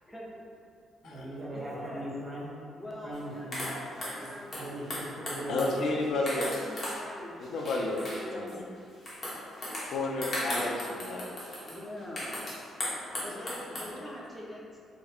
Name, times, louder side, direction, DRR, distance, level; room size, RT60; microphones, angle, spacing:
voice 1, 0.1-0.5 1.4-2.1 2.7-4.7 5.7-8.6 11.7-12.4 13.2-14.8, equal, 5° left, -5 dB, 0.5 m, -44 dB
voice 2, 1.0-2.5 3.0-3.8 4.2-5.7, right 1 dB, 35° right, -7 dB, 0.8 m, -40 dB
sound 1, 3.1-3.2 3.5-7.0 7.4-8.5 9.1-13.9, left 1 dB, 40° left, 0.8 m, -37 dB
voice 3, 5.5-6.5 7.4-8.0 8.3-8.7 9.9-11.3, left 2 dB, 70° left, -1 dB, 0.3 m, -31 dB
2.8 x 2.0 x 2.3 m, 2.3 s
cardioid pair, 90°, 0 cm